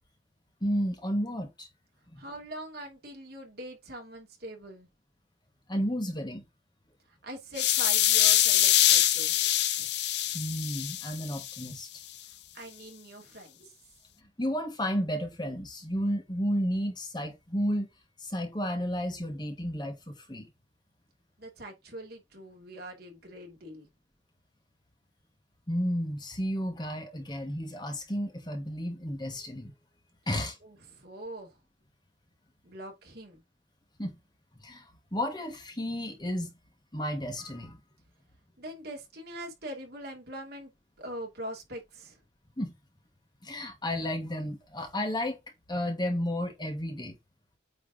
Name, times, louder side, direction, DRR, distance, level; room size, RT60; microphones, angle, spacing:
voice 1, 0.6-1.7 2.1-2.2 5.7-6.4 9.8-9.9 10.3-12.0 14.4-17.9 18.2-20.5 25.7-29.7 30.3-30.6 34.0-34.1 34.6-36.5 36.9-37.8 42.6-42.7 43.4-45.4 45.7-47.1, equal, 20° left, 1.5 m, -32 dB
voice 2, 2.2-4.9 7.2-9.5 12.5-13.7 21.4-23.9 30.6-31.6 32.6-33.4 38.6-40.7 41.0-42.2, right 1 dB, 50° right, 2.8 m, -42 dB
sound 1, 7.6-11.6, left 12 dB, 55° left, 0.7 m, -24 dB
8.8 x 3.4 x 3.7 m
head